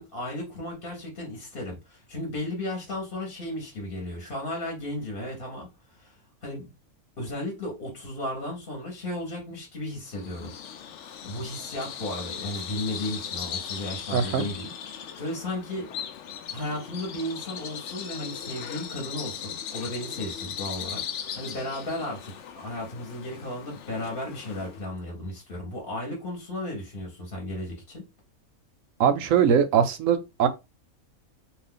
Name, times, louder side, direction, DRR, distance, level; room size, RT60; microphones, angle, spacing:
voice 1, 0.0-5.7 6.0-6.1 6.4-6.7 7.2-10.5 11.2-14.7 15.0-15.9 16.5-28.0, left 1 dB, 40° left, 1.1 m, -34 dB
Bird vocalization bird call bird song, 10.1-24.9, left 8 dB, 65° left, 0.7 m, -38 dB
voice 2, 14.1-14.5 29.0-30.5, right 7 dB, 70° right, 0.9 m, -21 dB
2.5 x 2.4 x 3.7 m
omnidirectional pair, 1.5 m